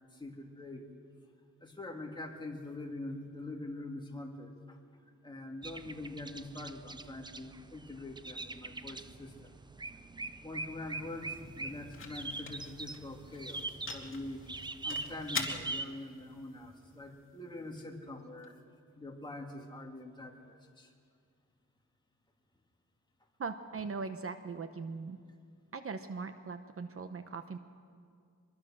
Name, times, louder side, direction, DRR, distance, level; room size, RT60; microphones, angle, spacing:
voice 1, 0.1-0.9 1.6-4.8 5.2-9.5 10.4-13.6 13.9-14.4 14.8-18.6 18.9-20.9, left 2 dB, 15° left, 1 dB, 2.5 m, -44 dB
sound 1, 5.6-15.8, right 3 dB, 15° right, 0.5 m, -43 dB
sound 2, 10.4-18.5, left 5 dB, 40° left, 2.4 m, -46 dB
voice 2, 23.4-25.2 25.7-27.6, right 4 dB, 45° right, 8 dB, 1.0 m, -40 dB
24.5 x 22.0 x 6.5 m, 2.2 s
wide cardioid pair, 130°, 31 cm